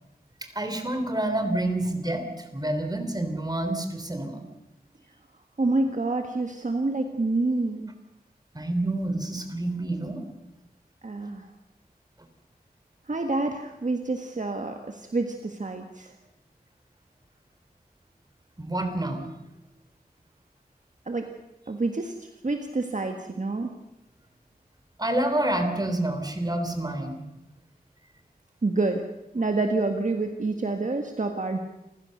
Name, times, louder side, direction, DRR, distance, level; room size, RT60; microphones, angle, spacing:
voice 1, 0.6-2.3 2.5-4.4 8.5-10.2 18.6-19.2 25.0-27.2, right 1 dB, 25° right, 6 dB, 3.5 m, -28 dB
voice 2, 5.6-7.9 11.0-11.5 13.1-16.1 21.1-21.3 21.7-23.7 28.6-29.0 29.3-31.6, right 3 dB, 50° right, 4 dB, 1.7 m, -27 dB
28.5 x 15.5 x 6.6 m, 0.92 s
wide cardioid pair, 80°, 16 cm